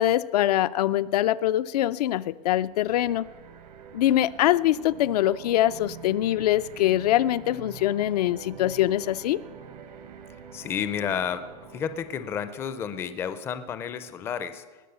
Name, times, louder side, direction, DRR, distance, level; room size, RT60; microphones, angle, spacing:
voice 1, 0.0-3.3 3.9-9.4, left 13 dB, 75° left, 14 dB, 0.5 m, -23 dB
sound 1, 2.7-13.2, right 7 dB, 85° right, 1.6 m, -46 dB
voice 2, 10.5-14.6, left 8 dB, 10° left, 11 dB, 0.4 m, -31 dB
19.5 x 7.1 x 6.8 m, 1.3 s
supercardioid pair, 170°, 20 cm